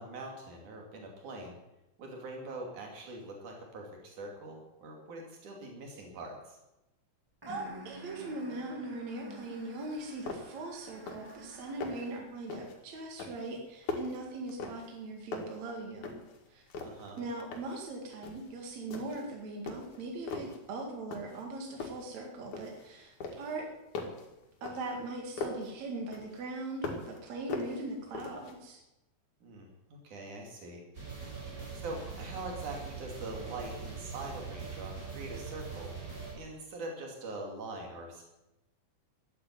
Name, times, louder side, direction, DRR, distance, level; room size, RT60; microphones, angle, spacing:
voice 1, 0.0-1.6 2.0-6.6 16.8-17.2 29.4-30.8 31.7-35.9 36.3-38.2, right 2 dB, 85° right, 0 dB, 4.1 m, -43 dB
sound 1, 7.4-12.3, equal, 10° right, 1.1 m, -49 dB
voice 2, 7.5-16.2 16.5-16.6 17.2-23.7 24.6-28.8 31.4-31.6, right 2 dB, 65° right, 1 dB, 3.3 m, -40 dB
sound 2, 9.8-9.9 10.3-10.7 10.9-11.4 11.6-12.1 12.5-12.8 13.2-15.0 15.3-16.4 16.7-17.8 18.2-18.5 18.9-19.3 19.7-20.6 21.1-21.5 21.8-22.9 23.2-25.7 26.1-27.2 27.5-28.6, left 4 dB, 75° left, 3.6 m, -41 dB
sound 3, 30.9-36.3, right 5 dB, 25° right, 6.4 m, -42 dB
14.0 x 9.9 x 9.4 m, 0.94 s
omnidirectional pair, 3.4 m